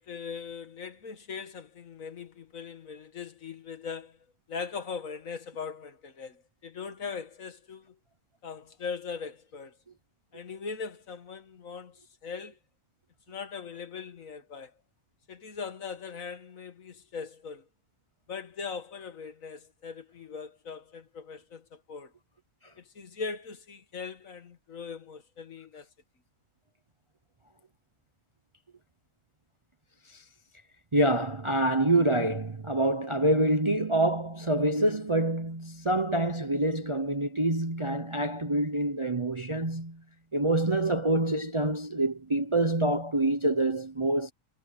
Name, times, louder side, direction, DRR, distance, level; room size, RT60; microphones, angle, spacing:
voice 1, 0.0-4.2 4.5-8.0 8.4-9.8 10.3-12.6 13.3-14.7 15.3-17.7 18.3-22.1 22.8-25.9, left 5 dB, 60° left, 1.8 m, -40 dB
voice 2, 30.9-40.0 40.3-44.3, right 1 dB, 25° right, 0.8 m, -26 dB
omnidirectional pair, 1.6 m